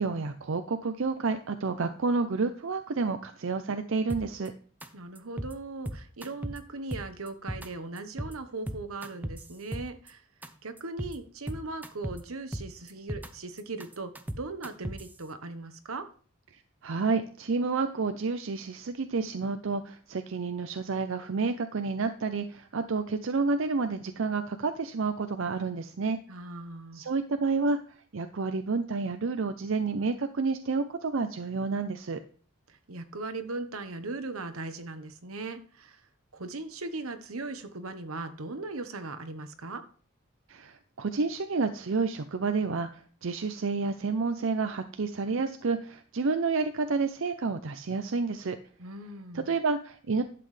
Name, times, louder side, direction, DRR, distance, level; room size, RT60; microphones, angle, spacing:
voice 1, 0.0-4.5 16.5-26.2 26.9-27.8 28.1-32.2 40.5-48.6 49.3-50.2, right 4 dB, 65° right, 9 dB, 0.6 m, -30 dB
sound 1, 4.1-4.5 4.8-4.9 5.2-5.5 5.9-6.6 6.9-7.7 8.0-8.3 8.7-10.1 10.4-10.5 10.8-11.1 11.5-12.2 12.5-13.3 13.6-15.1, equal, 10° right, 0.7 m, -36 dB
voice 2, 4.9-10.2 10.6-16.1 26.3-27.0 32.7-36.1 36.3-39.8 48.8-49.5, right 3 dB, 85° right, 9 dB, 1.1 m, -39 dB
11.5 x 7.7 x 3.3 m, 0.44 s
head